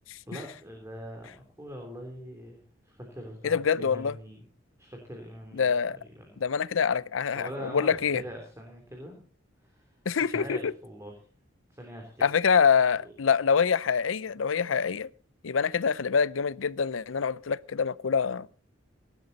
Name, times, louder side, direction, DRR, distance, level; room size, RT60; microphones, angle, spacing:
voice 1, 0.3-4.5 4.8-5.7 6.0-6.4 7.3-9.2 9.6-9.9 10.2-11.1 11.7-12.2 13.0-13.1, equal, 15° right, 3.3 m, -42 dB
voice 2, 3.4-4.1 5.5-6.0 6.4-8.2 10.1-10.7 12.2-15.1 15.4-18.5, left 6 dB, 90° left, 0.6 m, -25 dB
18.0 x 12.0 x 4.1 m
head